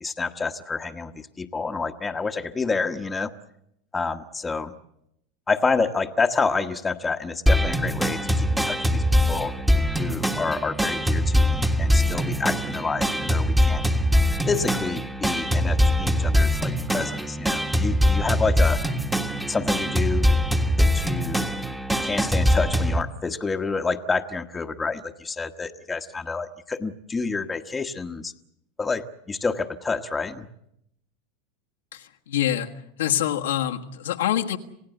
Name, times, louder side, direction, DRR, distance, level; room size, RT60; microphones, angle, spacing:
voice 1, 0.0-3.3 3.9-4.7 5.5-9.5 10.0-13.8 14.5-18.9 19.5-20.4 20.8-21.4 22.0-28.3 28.8-30.5, left 4 dB, 15° left, 6 dB, 1.2 m, -28 dB
sound 1, 7.5-23.0, equal, 5° right, 1.6 m, -22 dB
voice 2, 31.9-32.7 33.0-34.6, left 11 dB, 90° left, 2 dB, 1.5 m, -25 dB
27.5 x 16.5 x 7.9 m, 0.78 s
supercardioid pair, 115°, 0 cm